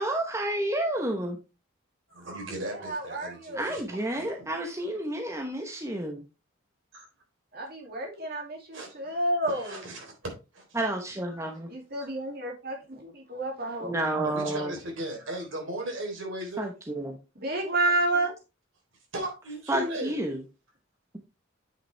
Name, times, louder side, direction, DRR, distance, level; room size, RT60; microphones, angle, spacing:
voice 1, 0.0-1.4 3.5-6.2 10.7-11.7 13.8-14.7 16.6-17.2 19.7-20.4, right 1 dB, 15° right, 0.9 m, -30 dB
voice 2, 2.1-4.4 6.9-7.1 8.7-9.0 9.4-10.1 10.5-10.8 11.3-11.4 12.0-12.1 14.2-16.7 19.1-20.2, right 1 dB, 70° right, 3.6 m, -37 dB
voice 3, 2.6-3.7 7.5-9.8 11.7-13.9 17.4-18.3, right 1 dB, 50° right, 2.4 m, -30 dB
8.9 x 5.9 x 3.3 m
head